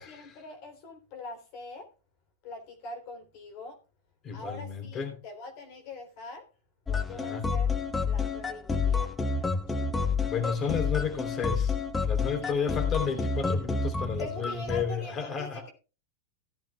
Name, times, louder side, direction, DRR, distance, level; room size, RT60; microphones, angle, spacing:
voice 1, 0.0-1.9 2.4-3.8 4.3-6.5 6.9-7.7 8.1-9.9 12.4-12.7 14.2-15.7, left 2 dB, 55° left, 3.6 m, -44 dB
voice 2, 4.2-5.2 7.1-7.5 10.3-11.7 12.0-15.6, left 6 dB, 30° left, 3.5 m, -32 dB
sound 1, 6.9-14.9, left 4 dB, 15° left, 1.1 m, -29 dB
16.5 x 10.5 x 2.4 m
hypercardioid pair, 125°, 0 cm